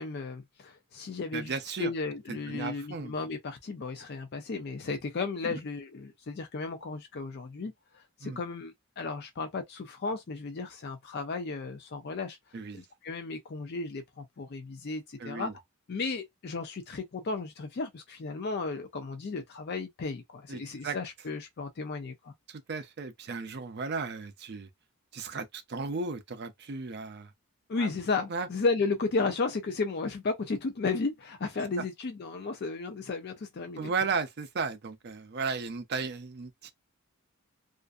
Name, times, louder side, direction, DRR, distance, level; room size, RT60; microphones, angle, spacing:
voice 1, 0.0-12.4 12.7-15.5 15.9-22.3 27.7-33.9, left 3 dB, 45° left, 0.4 m, -34 dB
voice 2, 1.3-1.9 2.3-3.1 5.4-5.6 8.2-8.4 12.5-12.8 15.2-15.5 20.5-21.0 22.5-24.7 25.1-27.3 27.8-27.9 28.3-28.5 33.8-36.7, right 4 dB, 45° right, 0.5 m, -35 dB
2.5 x 2.4 x 2.3 m
head